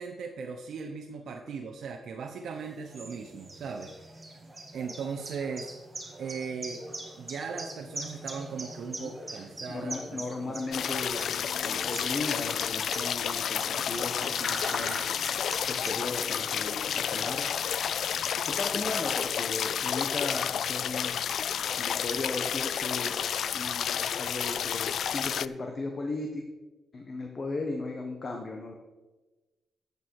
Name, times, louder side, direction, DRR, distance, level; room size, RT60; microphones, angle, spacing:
voice 1, 0.0-3.9 4.7-5.7 6.2-6.9 7.2-10.6, right 5 dB, 70° right, 2 dB, 0.9 m, -38 dB
sound 1, 2.5-19.1, right 2 dB, 15° right, 1.7 m, -43 dB
voice 2, 9.7-15.0 15.4-17.5 18.5-23.3 23.5-26.4 26.9-28.7, left 3 dB, 35° left, 3 dB, 1.2 m, -36 dB
sound 2, 10.7-25.5, left 8 dB, 65° left, 0.3 m, -30 dB
13.5 x 8.3 x 4.8 m, 1.2 s
wide cardioid pair, 140°, 0 cm